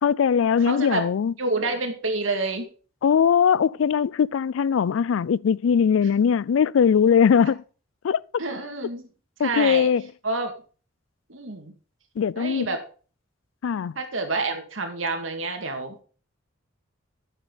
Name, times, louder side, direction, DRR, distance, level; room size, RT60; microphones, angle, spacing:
voice 1, 0.0-1.3 3.0-7.6 8.0-8.2 9.4-10.0 12.2-12.7 13.6-13.9, left 7 dB, 85° left, 0.4 m, -20 dB
voice 2, 0.6-1.0 1.4-2.7 8.4-9.1 9.4-9.9 10.2-10.5 11.3-11.7 12.4-12.8 14.0-16.0, right 3 dB, 85° right, 2.2 m, -28 dB
11.0 x 7.9 x 4.0 m
head